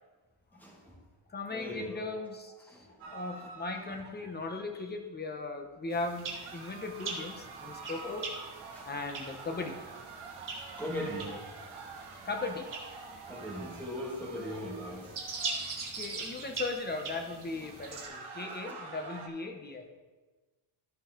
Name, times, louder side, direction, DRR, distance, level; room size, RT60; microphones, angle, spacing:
voice 1, 0.5-0.9 1.5-2.0 2.7-3.5 8.0-8.2 8.7-8.9 10.6-11.4 11.7-11.8 13.3-15.2 18.0-18.1 18.4-18.8, equal, 5° left, -4 dB, 2.0 m, -40 dB
voice 2, 1.3-8.3 8.8-9.8 11.2-11.4 12.2-12.7 15.9-19.9, left 3 dB, 20° left, 4 dB, 0.8 m, -38 dB
sound 1, 3.0-4.5 6.3-15.9 17.6-19.3, right 4 dB, 80° right, 1.5 m, -47 dB
sound 2, 5.9-18.1, right 4 dB, 40° right, 1.6 m, -42 dB
13.5 x 5.4 x 3.7 m, 1.3 s
cardioid pair, 170°, 49 cm